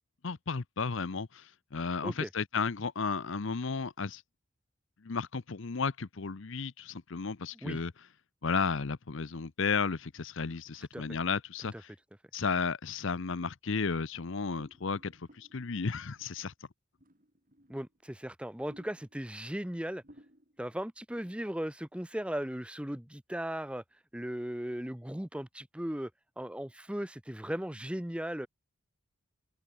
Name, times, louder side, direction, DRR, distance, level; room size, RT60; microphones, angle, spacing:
voice 1, 0.2-4.2 5.0-7.9 8.4-11.7 12.3-16.5, left 5 dB, 60° left, 0.7 m, -33 dB
sound 1, 14.5-16.3 17.0-18.1 18.7-19.3 19.8-19.9 20.0-20.7 21.1-21.4, equal, 40° right, 7.8 m, -60 dB
voice 2, 17.7-20.0 20.6-26.1 26.4-28.5, equal, 5° right, 0.7 m, -37 dB
head